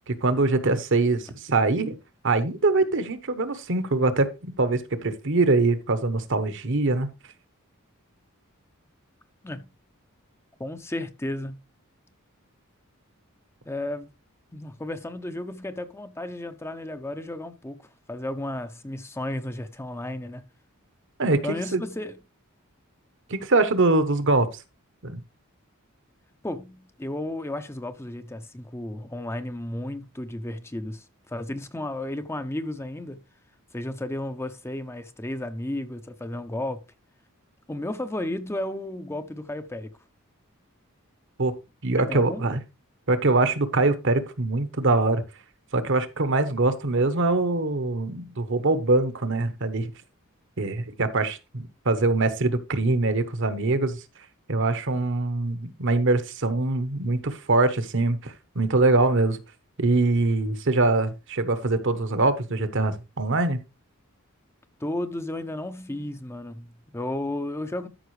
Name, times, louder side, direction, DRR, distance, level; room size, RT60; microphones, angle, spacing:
voice 1, 0.1-2.0 2.2-7.1 21.2-21.8 23.3-24.5 25.0-25.2 41.4-41.5 41.8-42.6 43.1-45.2 45.7-49.9 50.6-54.0 54.5-59.4 59.8-63.6, right 2 dB, 60° right, 1.1 m, -23 dB
voice 2, 10.6-11.6 13.7-14.1 14.5-20.4 21.4-22.2 26.4-33.2 33.7-36.9 37.7-39.9 42.1-42.5 64.8-67.9, left 1 dB, 10° left, 0.6 m, -33 dB
13.0 x 5.6 x 3.2 m
head